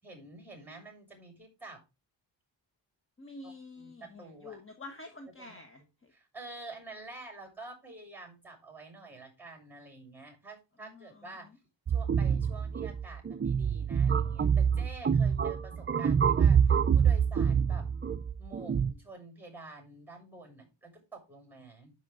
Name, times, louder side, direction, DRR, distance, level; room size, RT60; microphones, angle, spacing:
voice 1, 0.0-1.8 3.4-4.6 5.4-5.6 6.1-11.5 11.9-17.9 18.4-21.9, right 2 dB, 5° right, 1 dB, 6.7 m, -48 dB
voice 2, 3.2-6.1 10.8-11.6 15.1-15.5, left 3 dB, 30° left, 5 dB, 1.4 m, -49 dB
sound 1, 11.9-18.9, right 7 dB, 30° right, 0.5 m, -26 dB
12.5 x 5.6 x 3.8 m, 0.26 s
wide cardioid pair, 110°, 45 cm